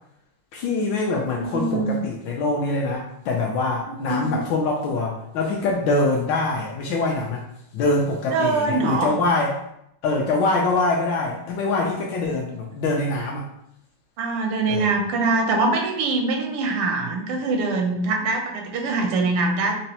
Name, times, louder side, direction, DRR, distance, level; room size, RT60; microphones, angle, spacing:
voice 1, 0.5-7.4 7.7-9.5 10.0-13.5 14.7-14.9, left 3 dB, 75° left, -1 dB, 1.1 m, -24 dB
voice 2, 1.4-2.0 3.9-4.4 8.3-9.1 14.2-19.8, right 3 dB, 85° right, 3 dB, 1.6 m, -23 dB
5.2 x 2.0 x 2.8 m, 0.77 s
omnidirectional pair, 2.4 m